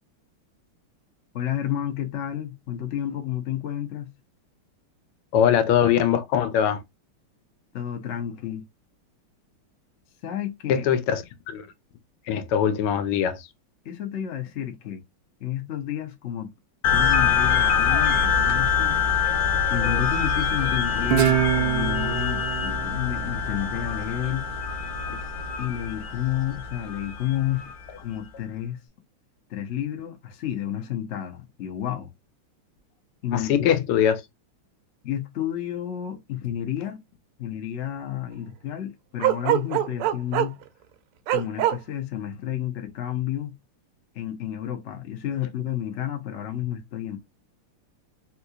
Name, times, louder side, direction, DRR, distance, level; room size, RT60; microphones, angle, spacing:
voice 1, 1.3-4.1 7.7-8.6 10.2-10.8 13.8-15.0 15.4-16.5 16.9-19.0 19.7-24.5 25.6-28.8 29.5-32.1 33.2-33.8 35.0-37.0 37.4-40.6 41.3-43.5 44.1-47.2, left 11 dB, 70° left, 0.6 m, -31 dB
voice 2, 5.3-6.8 10.7-11.7 12.3-13.5 25.1-25.2 33.3-34.2, left 9 dB, 85° left, 1.6 m, -22 dB
sound 1, 16.8-27.7, left 7 dB, 55° left, 1.1 m, -24 dB
Guitar, 21.1-24.3, right 13 dB, 75° right, 1.1 m, -26 dB
Bark, 39.2-40.6 41.3-41.8, right 13 dB, 90° right, 1.5 m, -22 dB
3.6 x 3.0 x 2.3 m
omnidirectional pair, 2.4 m